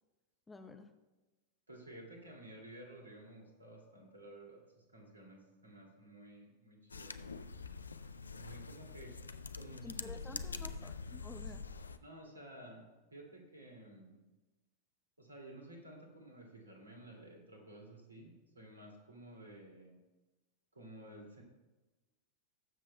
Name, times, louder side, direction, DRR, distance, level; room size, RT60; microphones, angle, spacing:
voice 1, 0.5-0.9 9.8-11.6, left 3 dB, 10° left, 6 dB, 0.8 m, -51 dB
voice 2, 1.7-7.5 8.3-9.2 9.6-10.0 10.6-10.9 12.0-14.2 15.2-20.0 20.7-21.4, right 1 dB, 75° right, 1 dB, 2.4 m, -54 dB
sound 1, 6.9-12.0, left 4 dB, 75° left, 0.4 m, -45 dB
20.5 x 7.4 x 2.2 m, 1.1 s
figure-of-eight pair, 90°, 0 cm